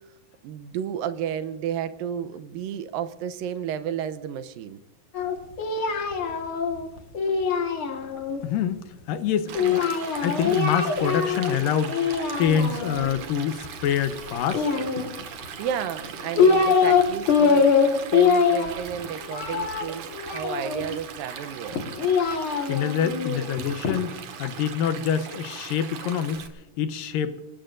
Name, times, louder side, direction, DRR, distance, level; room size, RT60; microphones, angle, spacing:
voice 1, 0.4-4.8 15.6-22.1, right 8 dB, 90° right, 10 dB, 2.5 m, -32 dB
Singing, 5.1-8.4 9.5-11.6 11.9-13.1 14.5-15.5 16.0-17.0 17.3-20.9 21.7-24.0, left 5 dB, 45° left, 2.0 m, -23 dB
voice 2, 8.4-9.9 10.2-12.1 12.4-14.7 22.7-26.5 26.8-27.4, left 8 dB, 80° left, 10 dB, 2.6 m, -26 dB
Stream, 9.5-26.5, right 7 dB, 65° right, 2.7 m, -39 dB
26.0 x 19.0 x 2.6 m, 0.92 s
omnidirectional pair, 4.0 m